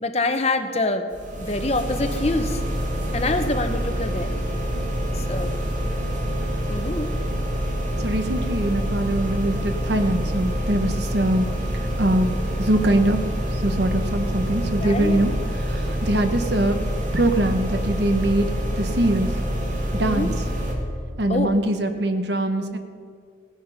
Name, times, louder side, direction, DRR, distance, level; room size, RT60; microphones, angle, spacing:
voice 1, 0.0-1.1 1.4-2.6 3.1-4.3 5.2-5.5 6.7-7.1 14.8-15.2 20.0-20.3 21.3-21.5, left 2 dB, 35° left, 8 dB, 0.8 m, -25 dB
sound 1, 1.1-20.7, equal, 40° right, 2.1 m, -26 dB
voice 2, 8.0-13.2 13.5-15.3 15.6-16.8 17.1-19.4 19.9-20.3 21.2-22.8, right 1 dB, 60° right, 7 dB, 1.0 m, -23 dB
17.0 x 9.5 x 5.6 m, 2.2 s
head